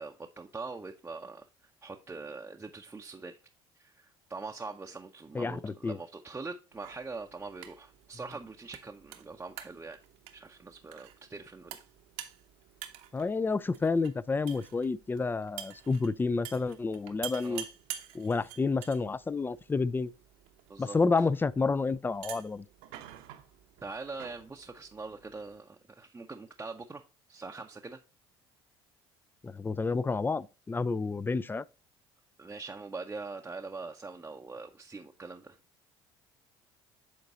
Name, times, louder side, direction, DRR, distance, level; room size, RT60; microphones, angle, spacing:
voice 1, 0.0-3.3 3.8-10.0 10.3-11.8 17.4-17.6 20.7-21.0 23.8-27.0 27.3-28.0 32.4-35.6, right 3 dB, 20° right, 0.7 m, -43 dB
voice 2, 5.3-6.0 13.1-17.6 18.1-20.1 20.8-22.6 29.4-31.6, left 4 dB, 15° left, 0.4 m, -30 dB
sound 1, 6.7-25.6, right 12 dB, 75° right, 0.9 m, -49 dB
8.0 x 3.9 x 4.0 m
hypercardioid pair, 65°, 12 cm